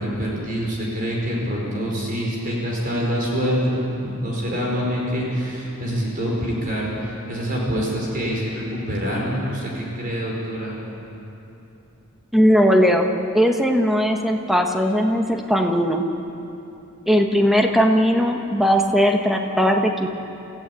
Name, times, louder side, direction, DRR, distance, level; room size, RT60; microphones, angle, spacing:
voice 1, 0.0-10.8, equal, 40° right, -3 dB, 4.8 m, -25 dB
voice 2, 12.3-16.1 17.1-20.1, equal, ahead, 3 dB, 1.4 m, -18 dB
28.0 x 15.0 x 8.5 m, 2.8 s
head